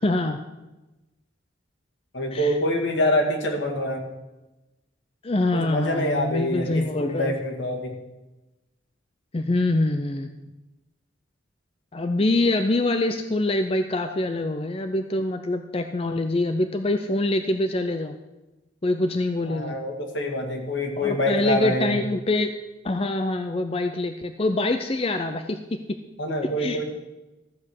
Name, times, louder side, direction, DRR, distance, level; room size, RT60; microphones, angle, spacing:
voice 1, 0.0-0.4 2.3-2.5 5.2-7.3 9.3-10.3 11.9-18.1 18.8-19.7 21.0-22.5 22.8-26.0 26.6-26.8, left 2 dB, 30° left, 7 dB, 0.5 m, -25 dB
voice 2, 2.1-4.0 5.5-8.0 19.5-22.0 26.2-26.8, left 1 dB, 75° left, 1 dB, 2.2 m, -25 dB
14.0 x 7.7 x 6.5 m, 1.1 s
head